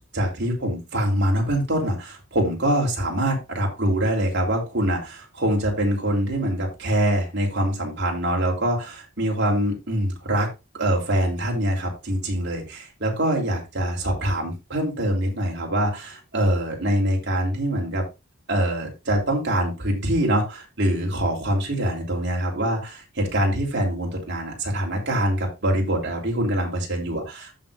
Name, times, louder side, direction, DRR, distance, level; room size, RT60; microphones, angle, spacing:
voice 1, 0.1-10.5 10.7-18.0 18.5-27.5, right 1 dB, 55° right, -1 dB, 3.5 m, -24 dB
15.0 x 5.3 x 2.6 m, 0.25 s
head